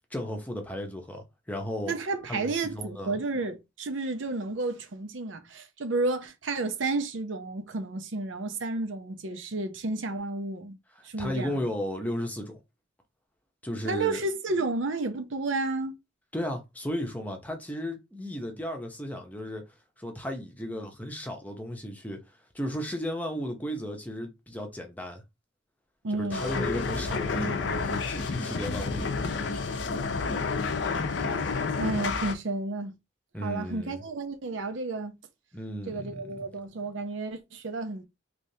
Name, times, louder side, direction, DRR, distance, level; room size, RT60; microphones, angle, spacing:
voice 1, 0.1-1.9 2.3-3.2 11.0-12.6 13.6-14.2 16.3-19.6 20.0-22.2 22.5-25.2 26.1-29.7 33.3-34.0 35.5-36.5, equal, 10° left, 0.7 m, -35 dB
voice 2, 1.9-10.8 11.0-11.7 13.8-16.0 26.0-26.5 31.8-32.9 33.4-35.1 35.9-38.0, right 3 dB, 85° right, 0.7 m, -31 dB
sound 1, 26.3-32.3, left 4 dB, 70° left, 0.5 m, -30 dB
3.4 x 3.0 x 2.7 m
head